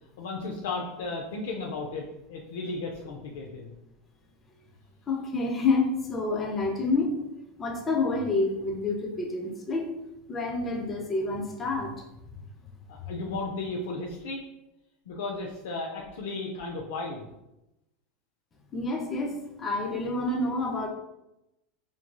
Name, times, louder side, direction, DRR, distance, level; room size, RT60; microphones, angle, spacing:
voice 1, 0.2-3.7 12.9-14.4 15.1-17.3, left 3 dB, 85° left, -1 dB, 0.4 m, -34 dB
voice 2, 5.1-7.2 7.6-9.9 10.3-11.9 18.7-19.3 19.6-20.9, left 3 dB, 20° left, 1 dB, 0.4 m, -28 dB
3.0 x 2.6 x 2.2 m, 0.90 s
supercardioid pair, 135°, 0 cm